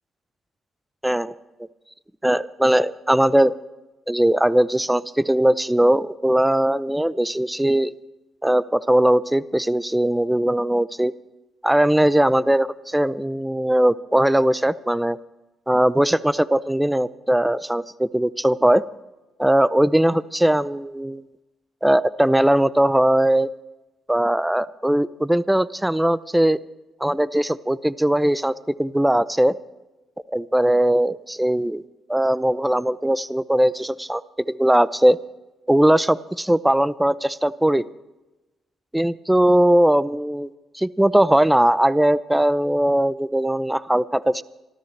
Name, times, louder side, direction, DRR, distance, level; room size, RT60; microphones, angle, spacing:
voice 1, 1.0-1.4 2.2-3.5 4.1-7.9 8.4-11.1 11.6-15.2 15.7-18.8 19.4-21.2 21.8-23.5 24.1-26.6 27.0-28.5 28.8-29.6 30.3-31.8 32.1-34.2 34.5-35.2 35.7-37.9 38.9-44.4, right 1 dB, 5° right, 17 dB, 0.6 m, -19 dB
26.5 x 13.5 x 3.3 m, 1.1 s
cardioid pair, 90°, 0 cm